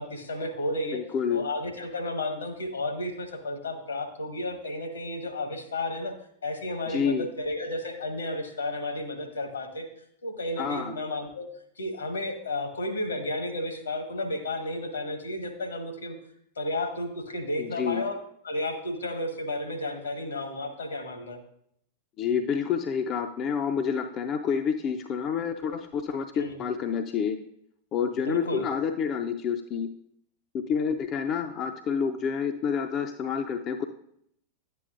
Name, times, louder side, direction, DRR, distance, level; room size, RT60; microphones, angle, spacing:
voice 1, 0.0-1.0 1.3-6.1 6.4-9.8 10.2-11.5 11.8-16.1 16.6-18.2 18.4-21.4 26.4-26.6 28.2-28.7, left 1 dB, 70° left, 5 dB, 1.3 m, -32 dB
voice 2, 0.9-1.4 6.9-7.3 10.6-10.9 17.6-18.0 22.2-27.4 27.9-29.9 30.5-33.8, left 7 dB, 35° left, 7 dB, 0.5 m, -28 dB
11.0 x 8.4 x 2.5 m, 0.70 s
figure-of-eight pair, 90°, 0 cm